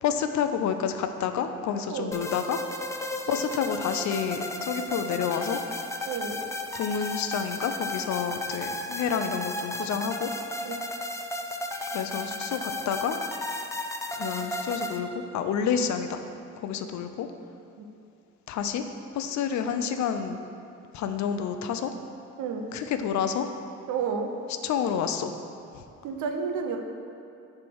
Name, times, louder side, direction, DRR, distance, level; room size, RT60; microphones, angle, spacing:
voice 1, 0.0-2.6 3.3-5.6 6.7-10.3 11.9-13.2 14.1-16.2 16.6-17.3 18.5-18.9 19.1-20.4 20.9-21.9 22.7-23.5 24.6-25.4 25.7-25.8, left 7 dB, 70° left, 8 dB, 0.5 m, -29 dB
voice 2, 1.9-2.2 6.1-6.4 10.6-10.8 17.8-17.9 22.4-22.7 23.9-24.3 26.0-26.8, right 6 dB, 80° right, 3 dB, 0.8 m, -31 dB
sound 1, 2.1-15.0, left 1 dB, 10° left, 0.4 m, -34 dB
7.0 x 3.4 x 6.1 m, 2.5 s
cardioid pair, 90°, 30 cm